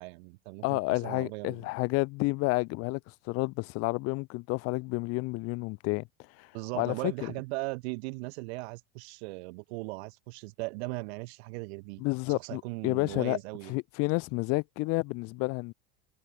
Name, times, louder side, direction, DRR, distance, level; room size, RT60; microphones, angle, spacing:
voice 1, 0.0-1.6 6.5-12.0 12.3-13.7, right 26 dB, 70° right, 2.1 m, -38 dB
voice 2, 0.6-6.0 6.4-7.3 12.0-13.4 13.7-15.7, left 25 dB, 45° left, 0.6 m, -30 dB
supercardioid pair, 150°, 33 cm